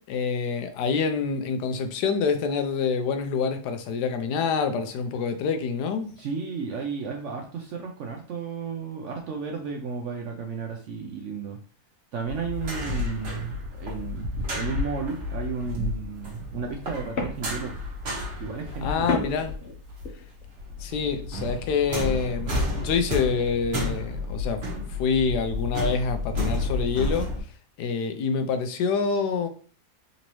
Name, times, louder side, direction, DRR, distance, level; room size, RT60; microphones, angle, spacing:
voice 1, 0.1-6.1 18.8-19.6 20.8-24.6 24.9-27.3 27.8-29.5, left 5 dB, 90° left, 1.2 m, -26 dB
voice 2, 6.2-11.6 12.1-17.7 18.4-19.1, right 5 dB, 70° right, 0.7 m, -33 dB
sound 1, 12.3-20.1 20.4-27.4, left 2 dB, 50° right, 1.3 m, -31 dB
sound 2, 15.8-15.9 16.6-17.8 19.1-20.3, left 3 dB, 55° left, 0.8 m, -32 dB
4.0 x 2.7 x 3.0 m
omnidirectional pair, 1.7 m